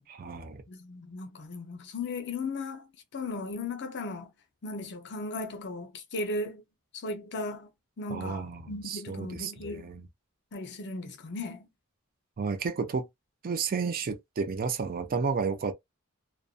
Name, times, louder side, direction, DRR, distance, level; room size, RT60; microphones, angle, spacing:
voice 1, 0.1-0.6 8.1-10.1 12.4-13.1 13.4-15.7, right 5 dB, 40° right, 0.4 m, -32 dB
voice 2, 0.7-2.9 3.1-4.3 4.6-6.6 6.9-7.7 8.0-9.9 10.5-11.7, left 2 dB, 50° left, 0.6 m, -36 dB
2.5 x 2.2 x 2.3 m
head